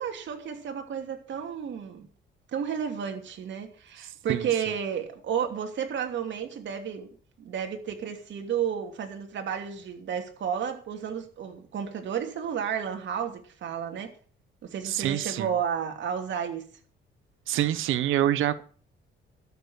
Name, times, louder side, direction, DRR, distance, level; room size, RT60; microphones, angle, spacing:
voice 1, 0.0-2.1 2.5-7.1 7.4-14.1 14.6-16.7, right 8 dB, 65° right, 2.9 m, -32 dB
voice 2, 14.8-15.5 17.5-18.6, right 12 dB, 85° right, 0.9 m, -26 dB
13.0 x 6.9 x 8.0 m
cardioid pair, 90°, 20 cm